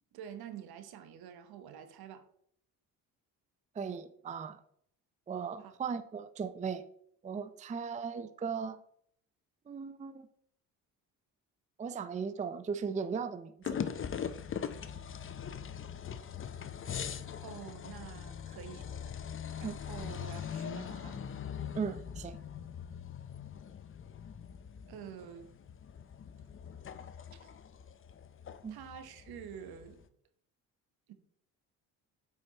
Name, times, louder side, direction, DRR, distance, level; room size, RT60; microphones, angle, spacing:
voice 1, 0.1-2.3 5.6-5.7 17.4-19.1 19.5-21.2 24.9-25.5 27.3-27.5 28.7-30.0 31.1-31.2, right 8 dB, 65° right, 1.0 m, -48 dB
voice 2, 3.7-4.6 5.3-6.8 7.2-8.8 9.7-10.3 11.8-13.8 19.6-19.7 21.7-22.4 28.6-28.8, right 6 dB, 20° right, 0.5 m, -37 dB
sound 1, 13.6-30.0, left 8 dB, 30° left, 0.6 m, -42 dB
8.5 x 4.8 x 2.9 m
hypercardioid pair, 60°, 40 cm